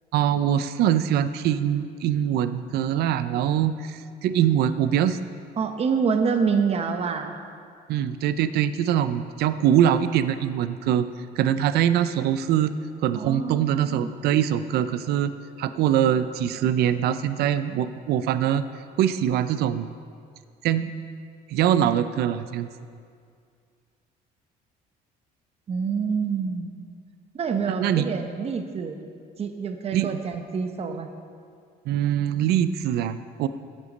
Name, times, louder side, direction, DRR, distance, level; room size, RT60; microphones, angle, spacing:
voice 1, 0.1-5.2 7.9-11.1 11.4-12.7 13.0-15.3 15.6-18.6 19.0-19.9 20.6-20.9 21.5-22.7 27.7-28.1 29.9-30.2 31.9-33.5, right 10 dB, 70° right, 12 dB, 0.4 m, -23 dB
voice 2, 5.6-7.3 13.1-14.1 25.7-26.7 27.3-29.0 29.4-31.1, right 5 dB, 35° right, 6 dB, 0.8 m, -27 dB
12.5 x 8.2 x 4.1 m, 2.2 s
cardioid pair, 110°, 17 cm